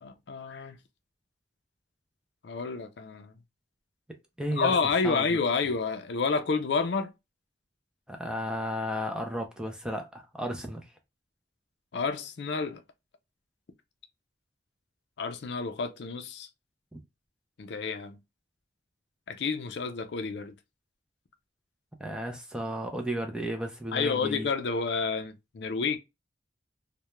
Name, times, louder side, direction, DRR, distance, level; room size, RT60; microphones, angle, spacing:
voice 1, 0.0-0.8 2.4-3.3 4.5-7.1 11.9-12.8 15.2-16.5 17.6-18.2 19.3-20.5 23.9-26.0, left 4 dB, 60° left, 0.4 m, -29 dB
voice 2, 4.4-4.7 5.0-5.2 8.1-10.8 16.9-17.0 22.0-24.5, equal, 5° right, 0.4 m, -33 dB
2.3 x 2.1 x 3.0 m
head